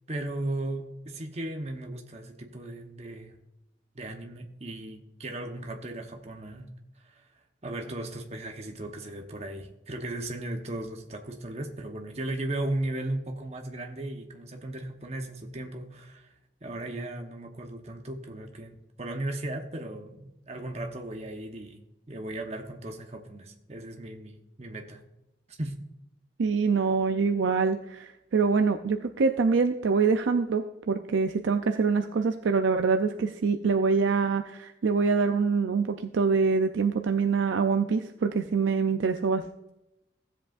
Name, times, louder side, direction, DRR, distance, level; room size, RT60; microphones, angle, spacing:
voice 1, 0.1-3.4 3.9-6.7 7.0-7.2 7.6-16.3 16.6-21.8 22.1-25.0 25.5-25.8, right 1 dB, 35° right, 0.9 m, -36 dB
voice 2, 26.4-39.4, right 5 dB, 85° right, 0.5 m, -25 dB
15.5 x 7.8 x 2.5 m
head